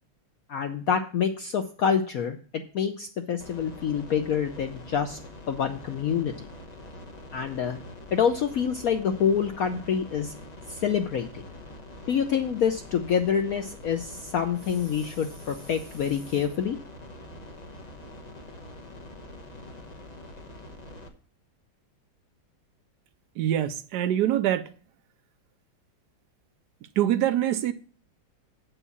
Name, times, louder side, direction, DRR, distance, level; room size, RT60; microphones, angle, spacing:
voice 1, 0.5-5.2 5.5-6.3 7.3-7.8 8.1-10.3 10.7-11.3 12.1-16.8, left 7 dB, 75° left, 0.8 m, -27 dB
sound 1, 3.4-21.1, left 1 dB, 30° left, 0.9 m, -44 dB
voice 2, 23.4-24.7 27.0-27.7, right 11 dB, 70° right, 1.0 m, -24 dB
8.3 x 5.5 x 7.0 m
omnidirectional pair, 2.2 m